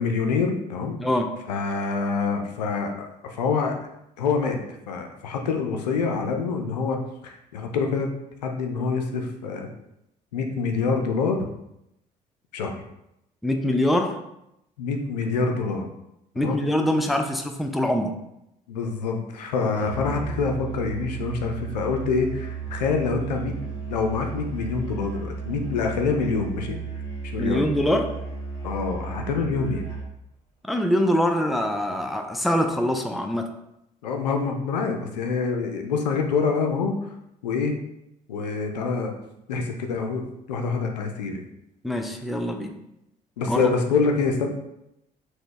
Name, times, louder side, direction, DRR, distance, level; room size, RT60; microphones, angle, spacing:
voice 1, 0.0-1.0 1.5-3.8 4.2-4.6 4.9-7.0 7.2-8.1 8.4-9.7 10.3-11.5 12.5-12.8 14.8-15.8 16.4-16.6 18.7-26.8 27.3-27.6 28.6-29.8 34.0-37.1 37.4-37.8 38.3-39.1 39.5-41.4 43.4-44.5, left 4 dB, 80° left, 3 dB, 0.4 m, -26 dB
voice 2, 1.0-1.3 13.4-14.2 16.4-18.1 27.4-28.1 30.6-33.5 41.8-42.7 43.5-43.7, left 1 dB, ahead, 4 dB, 0.3 m, -24 dB
Musical instrument, 19.7-30.1, right 5 dB, 15° left, 1.2 m, -34 dB
3.9 x 2.1 x 2.9 m, 0.83 s
figure-of-eight pair, 50°, 21 cm